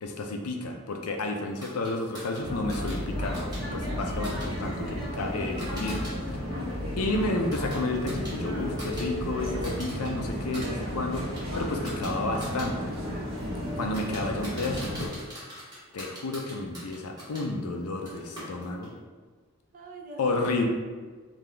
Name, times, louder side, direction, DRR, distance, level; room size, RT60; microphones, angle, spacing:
voice 1, 0.0-3.4 3.7-6.0 6.3-6.4 7.0-12.9 13.7-15.1 15.9-18.9 20.2-20.7, left 2 dB, 85° left, 3 dB, 0.5 m, -31 dB
sound 1, 1.6-6.1 6.5-9.1 9.4-10.1 10.4-17.5 18.1-19.0, equal, 20° right, 1.3 m, -44 dB
sound 2, 2.4-15.1, equal, 60° right, 1.4 m, -33 dB
voice 2, 13.3-13.8 19.7-20.7, right 2 dB, 40° right, 0 dB, 0.6 m, -45 dB
3.8 x 2.8 x 3.3 m, 1.5 s
head